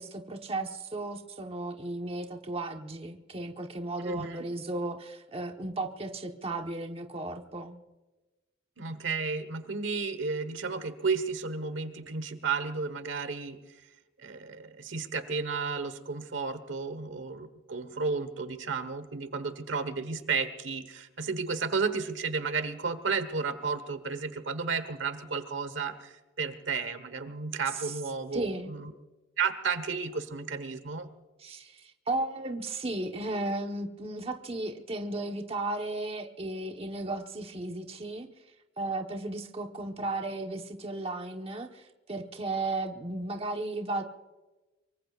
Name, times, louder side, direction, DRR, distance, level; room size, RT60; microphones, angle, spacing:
voice 1, 0.0-7.8 27.8-27.9 28.3-28.7 31.4-38.3 38.8-44.0, right 2 dB, 30° right, 4 dB, 1.2 m, -35 dB
voice 2, 4.0-4.4 8.8-13.6 14.2-28.9 29.4-31.1, right 5 dB, 70° right, 11 dB, 1.3 m, -33 dB
25.0 x 23.5 x 2.5 m, 1.1 s
head